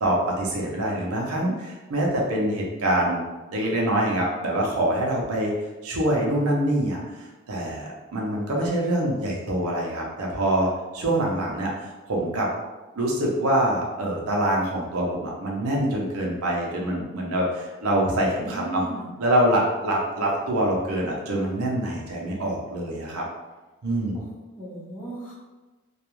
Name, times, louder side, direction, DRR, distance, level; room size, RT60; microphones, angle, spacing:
voice 1, 0.0-3.2 3.5-5.5 5.8-12.5 13.0-18.8 19.2-23.2 23.8-24.2, right 1 dB, 90° right, -2 dB, 0.6 m, -25 dB
voice 2, 18.1-19.1 24.1-24.3 24.6-25.3, right 2 dB, 5° left, -11 dB, 0.7 m, -36 dB
2.3 x 2.2 x 3.0 m, 1.2 s
head